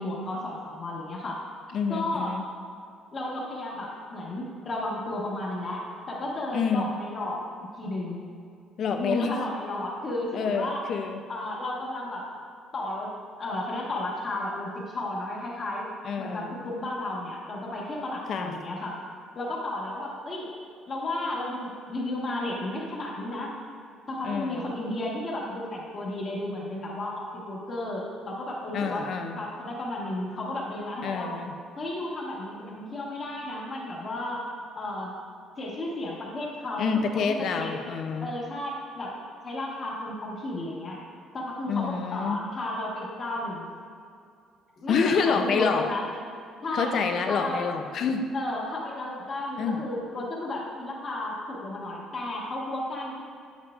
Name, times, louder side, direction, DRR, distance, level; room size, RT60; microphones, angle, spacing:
voice 1, 0.0-1.4 1.9-2.3 3.1-8.2 8.9-10.8 11.3-12.3 12.7-15.9 16.2-18.9 19.3-20.5 20.9-23.5 24.1-29.1 29.4-31.3 31.8-34.5 34.7-35.1 35.6-37.8 38.2-39.1 39.4-41.0 41.3-43.7 44.8-46.0 46.6-47.0 47.3-47.7 48.3-53.2, left 1 dB, 30° left, -3 dB, 1.3 m, -33 dB
voice 2, 1.7-2.5 6.5-6.9 8.8-9.4 10.3-11.3 16.0-16.6 18.3-18.5 24.2-24.7 28.7-29.4 31.0-31.5 36.8-38.3 41.7-42.4 44.9-45.9 46.7-48.3 49.6-49.8, left 5 dB, 45° left, 6 dB, 0.5 m, -27 dB
8.5 x 7.3 x 2.4 m, 2.4 s
cardioid pair, 170°, 0 cm